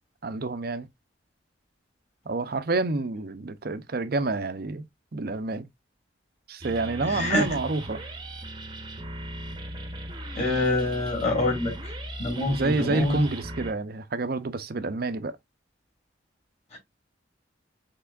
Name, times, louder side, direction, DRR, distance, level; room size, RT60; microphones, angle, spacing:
voice 1, 0.2-0.9 2.3-4.8 5.1-5.7 6.5-8.0 12.5-15.4, right 3 dB, 50° right, 0.6 m, -28 dB
sound 1, 6.6-13.7, right 1 dB, 20° right, 0.8 m, -38 dB
voice 2, 7.0-7.5 10.3-11.9 12.2-13.2 16.7-16.8, left 2 dB, 35° left, 2.9 m, -26 dB
5.7 x 3.6 x 2.4 m
head